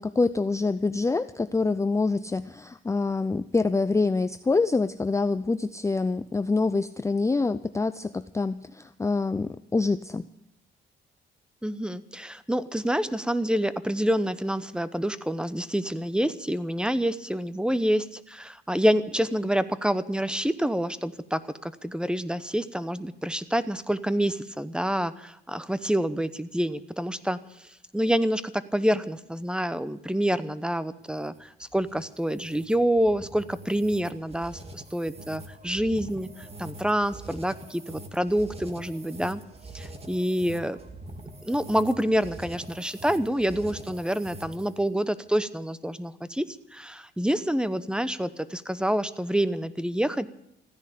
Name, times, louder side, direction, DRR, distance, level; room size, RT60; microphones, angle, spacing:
voice 1, 0.0-10.3, left 3 dB, 15° left, 12 dB, 0.5 m, -26 dB
voice 2, 11.6-39.4 39.7-40.8 41.4-50.3, equal, 5° right, 15 dB, 0.9 m, -27 dB
sound 1, 31.0-44.9, right 1 dB, 30° right, 2.5 m, -44 dB
15.5 x 10.5 x 8.5 m, 0.81 s
cardioid pair, 90°, 20 cm